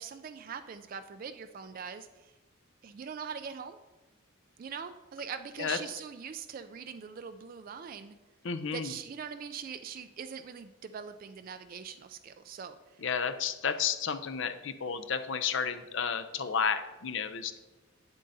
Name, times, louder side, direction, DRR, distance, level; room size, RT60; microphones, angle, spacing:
voice 1, 0.0-2.3 2.8-3.8 4.6-8.2 8.7-13.0, right 6 dB, 40° right, 9 dB, 0.3 m, -42 dB
voice 2, 8.4-8.9 13.0-17.6, left 6 dB, 60° left, 9 dB, 0.5 m, -32 dB
8.8 x 7.4 x 2.7 m, 1.2 s
head